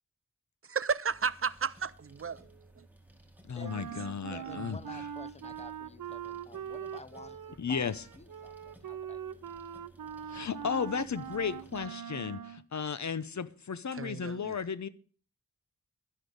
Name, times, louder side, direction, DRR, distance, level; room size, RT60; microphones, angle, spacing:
voice 1, 0.7-2.4 2.8-2.9 4.5-4.6 14.0-14.5, right 5 dB, 45° right, 0.4 m, -33 dB
sound 1, 1.1-11.9, right 1 dB, 5° right, 1.9 m, -58 dB
voice 2, 3.5-5.0 7.6-8.0 10.3-14.9, left 6 dB, 60° left, 0.9 m, -34 dB
Wind instrument woodwind instrument, 3.6-12.6, right 9 dB, 90° right, 0.7 m, -42 dB
voice 3, 4.3-9.6, left 3 dB, 20° left, 0.8 m, -51 dB
11.5 x 10.0 x 5.4 m
wide cardioid pair, 100°, 32 cm